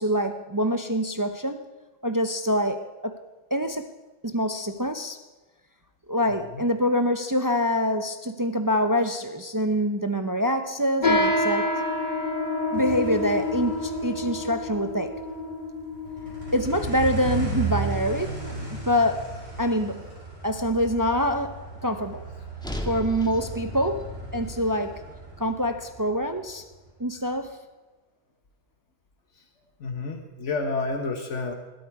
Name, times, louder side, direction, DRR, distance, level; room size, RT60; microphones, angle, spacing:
voice 1, 0.0-1.6 2.0-3.2 3.5-3.9 4.2-5.2 6.1-11.7 12.7-15.1 16.5-19.3 19.6-20.0 20.4-22.2 22.8-24.0 24.3-25.0 25.4-26.6 27.0-27.6, equal, 20° right, 7 dB, 0.6 m, -25 dB
sound 1, 11.0-18.8, left 2 dB, 40° left, 1.9 m, -28 dB
sound 2, 12.7-27.3, right 3 dB, 55° right, 7.0 m, -35 dB
sound 3, 22.6-26.9, left 1 dB, 5° left, 1.4 m, -40 dB
voice 2, 29.8-31.5, left 3 dB, 75° left, 5 dB, 1.5 m, -29 dB
20.5 x 12.5 x 4.8 m, 1.2 s
omnidirectional pair, 1.2 m